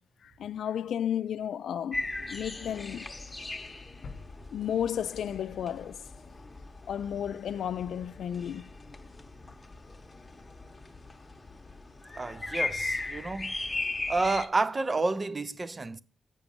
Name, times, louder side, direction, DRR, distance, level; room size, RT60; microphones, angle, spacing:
voice 1, 0.2-3.1 4.5-6.0 6.9-8.7, left 9 dB, 90° left, 0.4 m, -33 dB
sound 1, 1.9-14.5, left 3 dB, 20° left, 0.9 m, -38 dB
sound 2, 4.0-6.0 6.4-6.5, left 4 dB, 55° left, 0.8 m, -49 dB
voice 2, 12.1-13.5 14.1-16.0, right 3 dB, 25° right, 0.4 m, -30 dB
8.0 x 6.1 x 5.4 m
wide cardioid pair, 145°, 0 cm